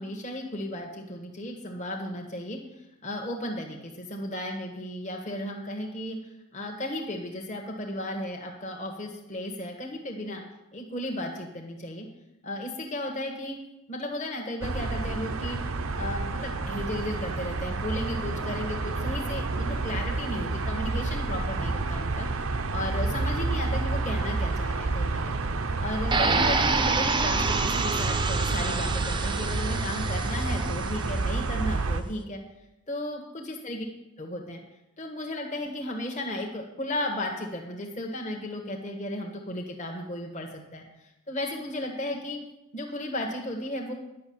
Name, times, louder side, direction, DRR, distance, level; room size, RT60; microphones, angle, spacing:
voice 1, 0.0-2.6 3.0-6.2 6.5-10.4 10.7-12.1 12.4-13.6 13.9-15.6 15.9-25.4 25.8-32.4 32.9-33.9 34.2-34.6 35.0-40.8 41.3-42.4 42.7-43.9, left 1 dB, 35° left, 1 dB, 1.6 m, -34 dB
sound 1, 14.6-32.0, right 3 dB, 75° right, 0.8 m, -29 dB
sound 2, 26.1-31.1, right 4 dB, 20° right, 0.7 m, -28 dB
10.5 x 6.6 x 8.7 m, 0.91 s
head